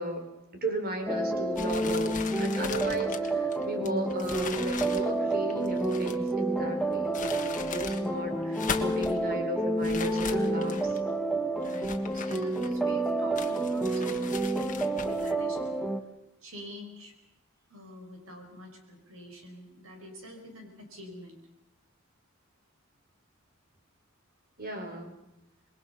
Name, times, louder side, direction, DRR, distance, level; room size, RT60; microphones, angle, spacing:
voice 1, 0.0-11.0 24.6-25.1, right 1 dB, 45° right, 4 dB, 4.2 m, -35 dB
sound 1, 1.1-16.0, right 2 dB, ahead, 1.5 m, -29 dB
sound 2, 1.5-6.3 6.9-8.1 8.4-9.2 9.8-11.0 11.6-12.9 13.4-15.3, left 6 dB, 40° left, 1.6 m, -39 dB
voice 2, 11.6-15.6 16.4-17.1 17.7-21.4, equal, 70° right, 4 dB, 5.3 m, -46 dB
26.5 x 21.5 x 5.6 m, 0.88 s
head